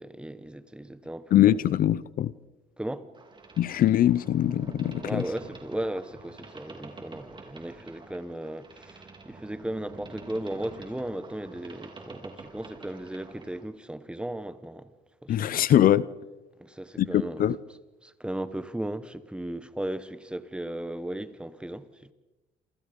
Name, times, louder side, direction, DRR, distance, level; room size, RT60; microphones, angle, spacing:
voice 1, 0.0-1.7 2.8-3.1 4.9-14.9 15.2-15.7 16.6-17.5 18.0-22.1, right 1 dB, 5° right, 1.4 m, -36 dB
voice 2, 1.3-2.3 3.6-5.2 15.3-16.1 17.0-17.6, left 12 dB, 55° left, 0.8 m, -22 dB
Boat Water vehicle, 3.1-13.7, right 3 dB, 30° right, 4.5 m, -47 dB
28.5 x 27.5 x 5.4 m
cardioid pair, 110°, 17 cm